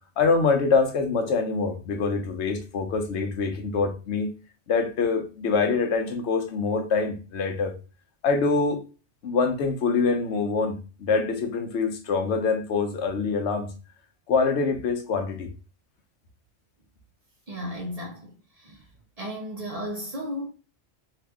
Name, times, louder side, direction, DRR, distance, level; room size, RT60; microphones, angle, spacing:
voice 1, 0.2-4.3 4.7-7.7 8.2-8.8 9.2-13.7 14.3-15.5, left 4 dB, 75° left, 1.0 m, -25 dB
voice 2, 17.5-18.8 19.2-20.5, equal, 40° right, 0.7 m, -34 dB
2.8 x 2.6 x 3.4 m
omnidirectional pair, 1.2 m